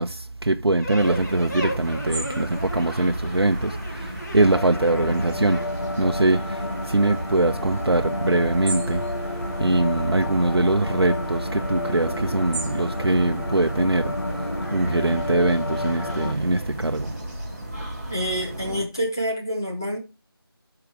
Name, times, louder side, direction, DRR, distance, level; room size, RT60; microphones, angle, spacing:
voice 1, 0.0-5.6 6.0-9.0 9.6-14.4 14.7-17.2, right 2 dB, 90° right, 0.8 m, -22 dB
sound 1, 0.8-5.6, equal, 45° left, 2.0 m, -36 dB
sound 2, 1.0-18.8, right 1 dB, 25° right, 4.6 m, -34 dB
sound 3, 4.4-16.3, left 2 dB, 60° left, 1.5 m, -31 dB
voice 2, 18.1-20.0, equal, 10° left, 0.6 m, -27 dB
12.5 x 4.9 x 3.3 m
figure-of-eight pair, 170°, 13 cm